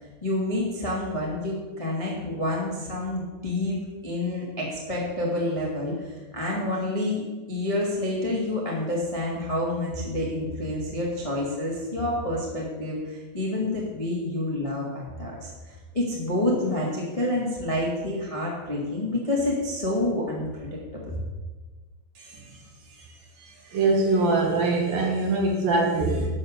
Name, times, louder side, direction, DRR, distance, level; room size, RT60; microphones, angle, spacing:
voice 1, 0.2-3.8 4.0-7.2 7.5-21.0, left 1 dB, 15° left, -3 dB, 1.2 m, -28 dB
voice 2, 23.7-26.3, right 3 dB, 60° right, 0 dB, 2.8 m, -23 dB
12.0 x 7.4 x 8.2 m, 1.3 s
omnidirectional pair, 5.6 m